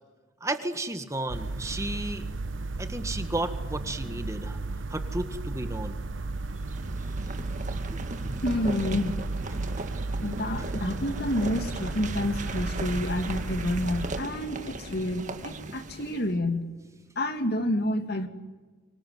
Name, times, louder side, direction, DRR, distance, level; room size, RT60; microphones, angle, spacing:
voice 1, 0.4-2.3 2.8-4.6 4.9-6.0 7.9-8.4 9.8-9.9, right 1 dB, 15° right, 8 dB, 1.7 m, -33 dB
sound 1, 1.3-14.2, right 3 dB, 70° right, 0.9 m, -34 dB
sound 2, 6.3-16.3, right 2 dB, 40° right, 2.0 m, -38 dB
voice 2, 8.4-9.1 10.2-16.6 17.2-18.3, left 1 dB, 55° left, 7 dB, 2.5 m, -29 dB
25.0 x 25.0 x 9.4 m, 1.3 s
head